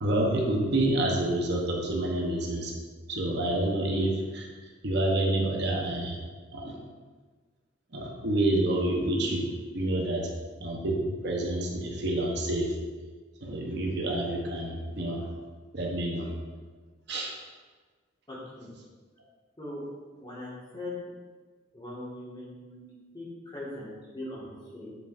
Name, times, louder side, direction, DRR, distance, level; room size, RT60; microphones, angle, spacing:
voice 1, 0.0-2.7 3.1-4.5 4.8-6.2 6.5-6.8 7.9-9.5 9.7-10.3 10.6-12.7 13.4-15.3 15.7-16.3 17.1-17.3, right 1 dB, 60° right, -1 dB, 1.0 m, -28 dB
voice 2, 18.3-18.7 19.6-19.8 20.2-21.1 21.7-24.9, left 1 dB, 25° left, -7 dB, 1.8 m, -40 dB
7.7 x 5.1 x 2.6 m, 1.4 s
head